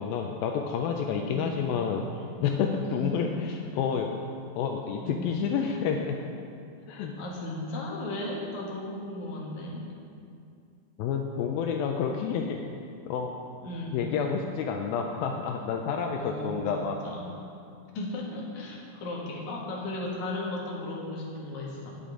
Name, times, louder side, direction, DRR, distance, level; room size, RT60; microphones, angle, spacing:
voice 1, 0.0-4.1 4.6-6.3 6.9-7.1 11.0-12.6 13.1-13.3 13.9-17.0, left 6 dB, 85° left, 2 dB, 2.4 m, -29 dB
voice 2, 1.3-1.7 2.8-3.4 5.0-5.3 7.2-9.8 13.6-13.9 15.9-17.3 17.9-22.0, left 2 dB, 60° left, -3 dB, 2.7 m, -36 dB
17.0 x 6.9 x 3.8 m, 2.4 s
omnidirectional pair, 4.2 m